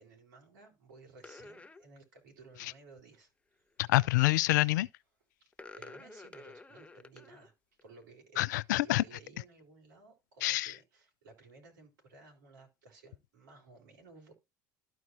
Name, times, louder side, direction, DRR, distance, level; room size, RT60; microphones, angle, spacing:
voice 1, 0.0-3.3 5.7-7.5 7.8-14.3, right 3 dB, 80° right, 3.6 m, -56 dB
sound 1, 1.2-1.8 3.8-4.1 5.5-7.5 7.8-8.0, left 3 dB, 10° left, 0.7 m, -50 dB
voice 2, 3.8-4.9 8.4-9.0 10.4-10.7, left 18 dB, 75° left, 0.4 m, -27 dB
13.0 x 4.7 x 2.8 m
hypercardioid pair, 80°, 10 cm